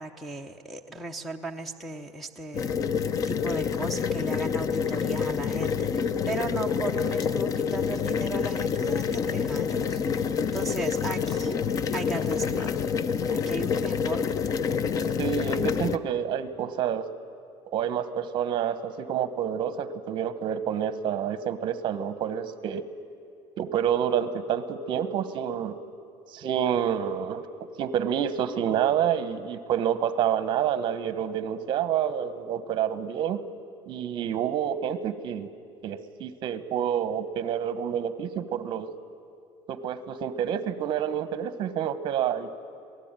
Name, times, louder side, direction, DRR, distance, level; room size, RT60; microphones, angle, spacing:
voice 1, 0.0-2.7 3.3-10.3 10.5-11.6 11.9-12.8 13.3-14.4, right 3 dB, ahead, -1 dB, 0.8 m, -36 dB
sound 1, 2.5-16.0, left 6 dB, 30° left, 0.6 m, -27 dB
voice 2, 15.2-17.1 17.7-22.8 23.6-25.8 26.3-27.4 27.8-33.4 33.9-35.5 35.8-38.9 39.7-42.5, right 9 dB, 45° right, 12 dB, 1.2 m, -28 dB
26.5 x 18.5 x 9.0 m, 2.5 s
cardioid pair, 170°, 12 cm